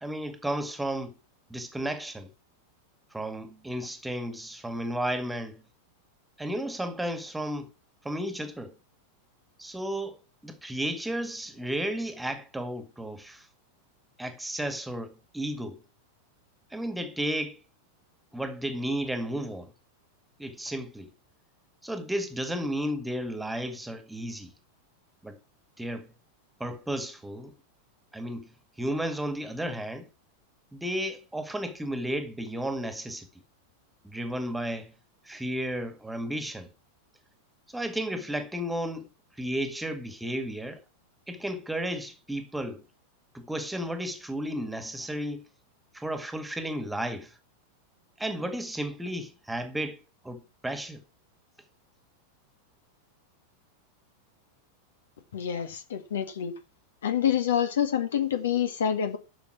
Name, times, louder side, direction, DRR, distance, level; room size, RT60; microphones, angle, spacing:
voice 1, 0.0-1.1 1.5-2.3 3.1-5.6 6.4-7.7 8.0-8.7 9.6-10.2 10.4-13.5 14.2-15.8 16.7-17.6 18.3-19.7 20.4-21.1 21.8-24.5 25.2-25.4 25.8-26.1 26.6-27.5 28.1-28.5 28.8-30.1 30.7-33.3 34.0-34.9 35.3-36.7 37.7-39.1 39.4-40.8 41.3-42.8 43.3-45.5 45.9-47.3 48.2-51.0, right 1 dB, 5° right, 2.0 m, -33 dB
voice 2, 55.3-56.5 57.0-59.2, left 9 dB, 60° left, 2.1 m, -27 dB
12.0 x 7.1 x 6.0 m
figure-of-eight pair, 90°, 0 cm